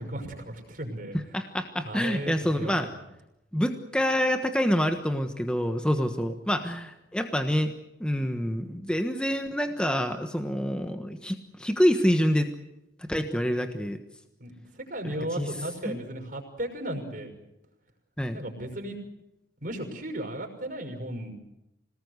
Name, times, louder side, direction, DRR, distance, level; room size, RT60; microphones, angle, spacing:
voice 1, 0.0-1.2 1.8-3.0 14.4-17.3 18.3-19.0 19.6-21.3, right 1 dB, 50° right, 4 dB, 6.1 m, -35 dB
voice 2, 1.3-2.9 3.5-7.7 8.0-12.5 13.1-14.0 15.0-15.5 15.8-16.0 18.2-18.4, equal, 5° left, 6 dB, 1.3 m, -27 dB
26.5 x 19.5 x 8.2 m, 0.88 s
head